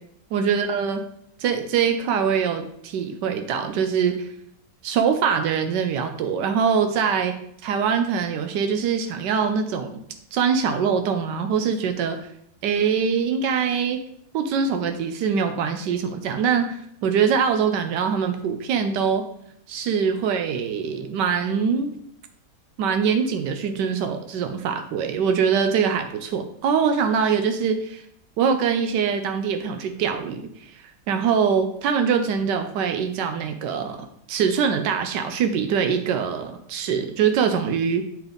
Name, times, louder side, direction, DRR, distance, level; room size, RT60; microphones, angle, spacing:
voice 1, 0.3-1.0 1.4-4.3 4.8-7.3 7.6-10.0 10.3-12.3 12.6-14.0 14.3-19.2 19.7-22.0 22.8-28.0 28.4-38.0, right 6 dB, 90° right, 7 dB, 1.3 m, -23 dB
9.8 x 3.8 x 3.5 m, 0.71 s
omnidirectional pair, 1.8 m